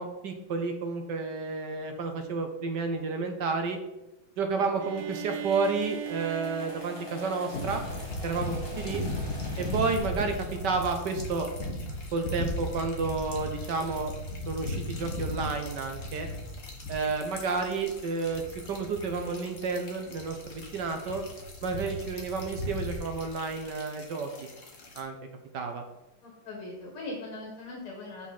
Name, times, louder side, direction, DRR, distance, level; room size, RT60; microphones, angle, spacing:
voice 1, 0.0-3.8 4.4-7.8 8.2-9.0 9.6-10.3 10.6-11.5 12.1-14.1 14.5-16.3 16.9-21.2 21.6-24.3 24.9-25.2 25.5-25.8, right 4 dB, 65° right, 5 dB, 1.2 m, -31 dB
sound 1, 4.4-10.0, left 1 dB, 15° left, 1.4 m, -45 dB
Bowed string instrument, 4.8-8.5, right 12 dB, 85° right, 0.9 m, -40 dB
sound 2, 7.5-25.0, left 1 dB, 45° left, 1.7 m, -37 dB
voice 2, 26.2-28.3, left 2 dB, 80° left, -2 dB, 2.5 m, -40 dB
7.9 x 6.0 x 4.2 m, 0.95 s
omnidirectional pair, 2.3 m